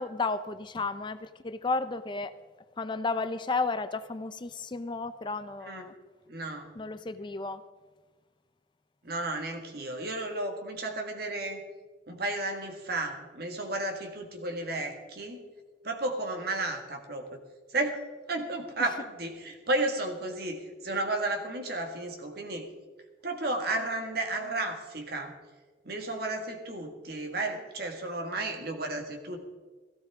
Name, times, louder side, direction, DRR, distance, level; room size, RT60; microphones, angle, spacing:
voice 1, 0.0-2.3 2.8-5.9 6.8-7.6, left 3 dB, 25° left, 12 dB, 0.4 m, -33 dB
voice 2, 6.3-6.7 9.0-11.6 12.1-15.4 15.8-17.4 17.7-18.0 18.3-22.7 23.2-25.3 25.9-29.4, right 2 dB, 60° right, 4 dB, 1.7 m, -33 dB
17.0 x 14.5 x 3.6 m, 1.3 s
head